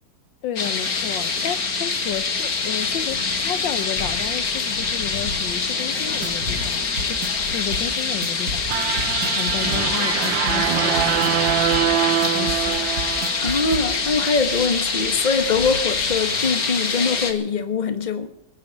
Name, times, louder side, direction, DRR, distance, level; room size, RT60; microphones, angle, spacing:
voice 1, 0.4-7.2 7.5-8.8 9.2-11.4 12.3-12.8, left 10 dB, 80° left, 1.6 m, -32 dB
sound 1, 0.6-17.3, left 4 dB, 50° left, 2.1 m, -25 dB
sound 2, 6.0-13.9, right 1 dB, 50° right, 2.2 m, -32 dB
sound 3, 8.7-14.0, right 11 dB, 85° right, 1.5 m, -24 dB
voice 2, 13.4-18.3, left 4 dB, 25° left, 1.2 m, -23 dB
20.5 x 7.5 x 9.2 m
omnidirectional pair, 2.0 m